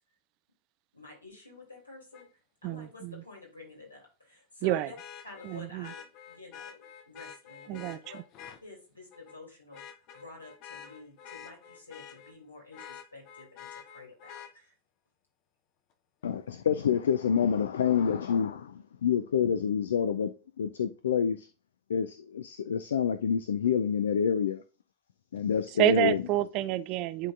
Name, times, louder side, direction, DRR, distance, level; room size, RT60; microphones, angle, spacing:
voice 1, 0.9-2.3 2.6-5.0 5.2-8.2 8.6-14.7, left 3 dB, 80° left, 2.8 m, -50 dB
Vehicle horn car horn honking, 2.1-2.2 5.0-8.6 9.1-9.4 9.7-12.3 12.7-14.5 16.3-16.4, left 8 dB, 40° left, 0.7 m, -47 dB
voice 2, 2.6-3.2 4.6-4.9 5.4-5.9 7.7-8.0 25.8-27.3, right 15 dB, 40° right, 0.4 m, -28 dB
voice 3, 16.2-20.3 20.6-21.5 21.9-24.6 25.3-26.3, left 7 dB, 65° left, 0.4 m, -27 dB
11.0 x 3.9 x 2.5 m
figure-of-eight pair, 90°, 0 cm